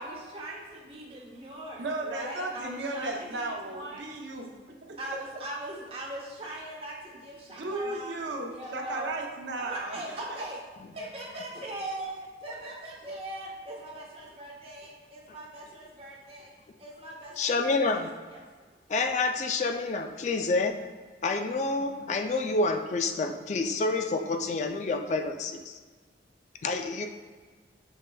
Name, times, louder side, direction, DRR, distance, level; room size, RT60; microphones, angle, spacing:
voice 1, 0.0-4.0 5.0-8.1 8.5-9.1 9.6-10.6 10.9-16.5 16.8-18.0 18.3-18.4, right 1 dB, 35° right, -3 dB, 0.8 m, -40 dB
voice 2, 1.8-5.0 7.5-10.0 10.3-10.4, right 2 dB, 90° right, 2 dB, 0.6 m, -35 dB
voice 3, 17.4-18.1 18.9-20.8 21.2-25.8 26.6-27.1, left 3 dB, 40° left, 6 dB, 0.3 m, -28 dB
6.4 x 3.2 x 2.2 m, 1.5 s
head